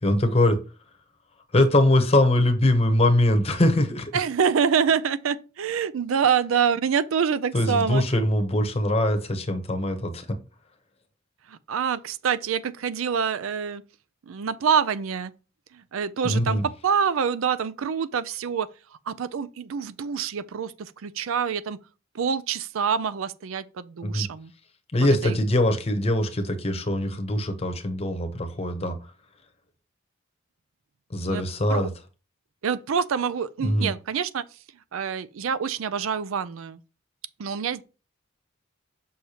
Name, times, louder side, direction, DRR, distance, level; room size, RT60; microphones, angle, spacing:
voice 1, 0.0-0.6 1.5-4.2 7.5-10.4 16.2-16.6 24.0-24.3 24.9-29.0 31.1-31.9 33.6-33.9, left 1 dB, 30° left, 0.8 m, -22 dB
voice 2, 4.1-8.2 11.5-13.8 14.3-15.3 15.7-18.7 19.1-21.8 22.1-24.5 25.0-25.4 31.3-31.4 31.7-31.9 32.6-34.4 34.9-36.8 37.4-37.8, right 7 dB, 85° right, 0.4 m, -26 dB
6.5 x 5.5 x 2.9 m
head